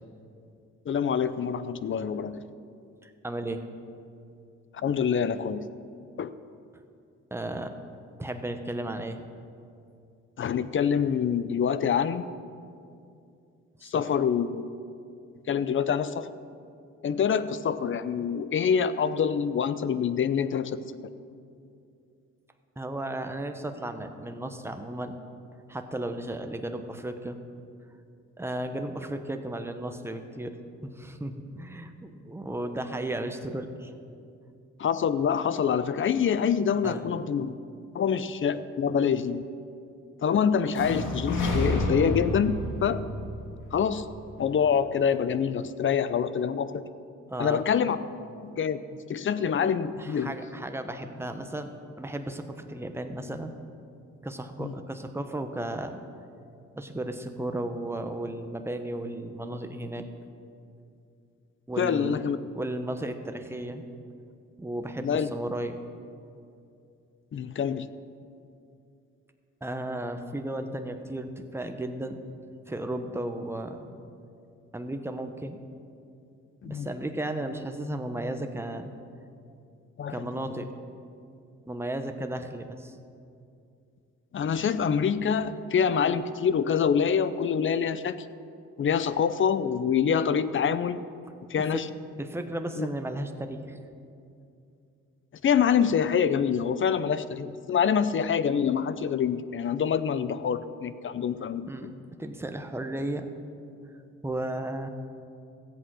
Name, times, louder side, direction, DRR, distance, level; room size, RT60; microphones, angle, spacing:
voice 1, 0.9-2.4 4.8-5.7 6.2-6.3 10.4-12.2 13.9-14.6 15.5-16.3 17.0-20.8 34.8-37.5 37.9-39.4 40.2-43.0 43.7-44.1 44.4-46.9 47.4-48.0 48.4-48.8 49.1-50.3 54.6-54.7 61.8-62.4 65.0-65.3 67.3-67.9 76.6-76.9 80.0-80.3 84.3-88.2 88.8-91.0 91.5-91.9 92.8-92.9 95.4-101.9, left 7 dB, 40° left, 14 dB, 0.6 m, -26 dB
voice 2, 3.0-3.6 7.3-7.7 8.2-9.2 13.8-14.0 22.8-25.2 25.7-27.4 28.4-30.5 30.8-33.9 36.8-37.0 47.3-47.6 50.0-51.7 52.0-53.5 54.2-56.0 56.8-60.0 61.7-62.2 62.5-63.8 64.6-65.8 69.6-72.2 72.7-73.9 74.7-75.6 76.6-78.9 80.1-80.7 81.7-83.0 91.7-91.8 92.2-93.8 101.7-101.9 102.2-103.3 104.2-104.9, right 1 dB, 10° right, 6 dB, 1.0 m, -34 dB
sound 1, 40.7-44.6, left 1 dB, 85° left, 2.1 m, -30 dB
14.5 x 8.3 x 6.2 m, 2.5 s
cardioid pair, 90°, 30 cm